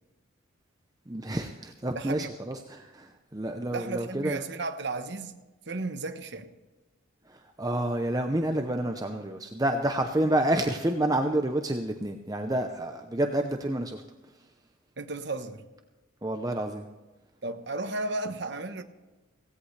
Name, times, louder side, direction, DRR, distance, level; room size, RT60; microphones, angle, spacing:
voice 1, 1.1-4.4 7.3-14.0 16.2-16.8, right 1 dB, 20° right, 0.7 m, -29 dB
voice 2, 1.9-2.3 3.7-5.3 5.7-6.5 15.0-15.6 17.4-18.8, right 2 dB, 55° right, 1.1 m, -34 dB
17.0 x 16.5 x 3.3 m
head